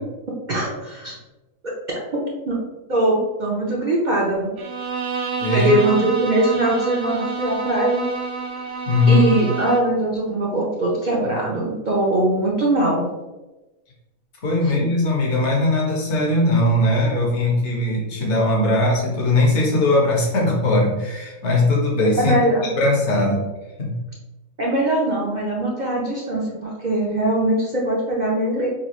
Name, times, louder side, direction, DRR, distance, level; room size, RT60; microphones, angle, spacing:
voice 1, 0.5-1.2 1.6-1.7 2.1-2.6 2.9-4.5 5.5-8.1 9.1-13.1 14.6-14.8 22.2-22.7 24.6-28.7, right 1 dB, 45° right, -4 dB, 0.7 m, -21 dB
Bowed string instrument, 4.6-10.0, right 4 dB, 80° right, 1.0 m, -28 dB
voice 2, 5.4-5.8 8.9-9.4 14.4-22.4 22.7-23.4 23.8-24.0, left 2 dB, 60° left, -3 dB, 1.4 m, -19 dB
5.3 x 2.4 x 3.0 m, 1.1 s
omnidirectional pair, 1.4 m